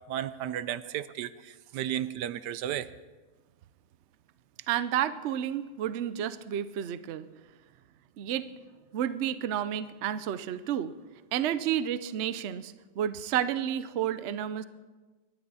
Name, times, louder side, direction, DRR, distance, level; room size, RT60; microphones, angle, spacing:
voice 1, 0.1-2.9, right 11 dB, 80° right, 15 dB, 1.2 m, -34 dB
voice 2, 4.7-7.3 8.2-8.5 8.9-10.9 11.3-14.6, right 10 dB, 60° right, 13 dB, 0.7 m, -31 dB
24.5 x 11.5 x 4.1 m, 1.3 s
omnidirectional pair, 1.8 m